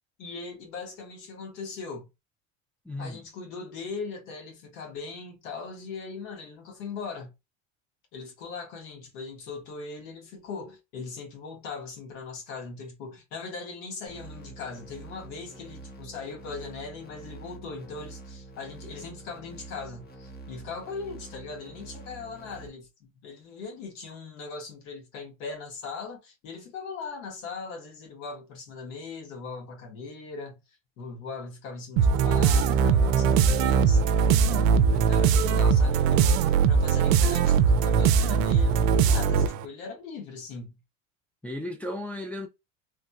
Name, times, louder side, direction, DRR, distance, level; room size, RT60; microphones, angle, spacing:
voice 1, 0.2-2.1 3.0-7.3 8.1-30.6 31.0-40.8, left 4 dB, 75° left, 1.5 m, -39 dB
voice 2, 2.8-3.2 41.4-42.5, left 1 dB, 5° left, 0.4 m, -35 dB
sound 1, 14.1-22.7, right 3 dB, 25° left, 1.1 m, -46 dB
sound 2, 32.0-39.6, right 6 dB, 80° right, 0.5 m, -21 dB
3.2 x 2.7 x 2.2 m
supercardioid pair, 105°, 39 cm